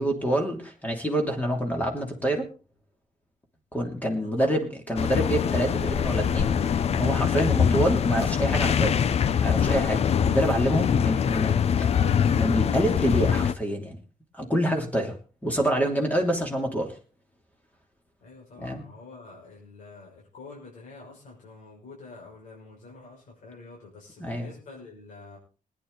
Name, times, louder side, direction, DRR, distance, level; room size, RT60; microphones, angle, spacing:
voice 1, 0.0-2.5 3.7-9.0 9.4-11.8 12.3-14.0 14.3-15.2 15.4-16.9 18.6-18.8 24.2-24.5, right 1 dB, 10° left, 2 dB, 3.0 m, -27 dB
voice 2, 4.2-4.6 18.2-25.4, left 3 dB, 70° left, -3 dB, 6.2 m, -47 dB
sound 1, 5.0-13.5, left 8 dB, 50° left, 0.6 m, -23 dB
20.5 x 10.0 x 4.0 m, 0.36 s
wide cardioid pair, 155°, 14 cm